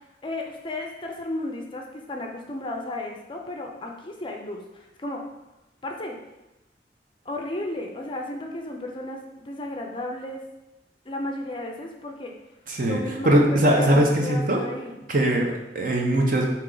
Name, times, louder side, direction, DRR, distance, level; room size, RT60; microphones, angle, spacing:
voice 1, 0.2-5.3 5.8-6.2 7.2-10.5 11.1-12.4 12.9-15.0, left 1 dB, 30° left, 2 dB, 0.5 m, -34 dB
voice 2, 12.7-13.0 13.2-14.6 15.1-16.5, right 1 dB, 50° right, 0 dB, 0.7 m, -21 dB
4.5 x 2.9 x 3.8 m, 0.96 s
head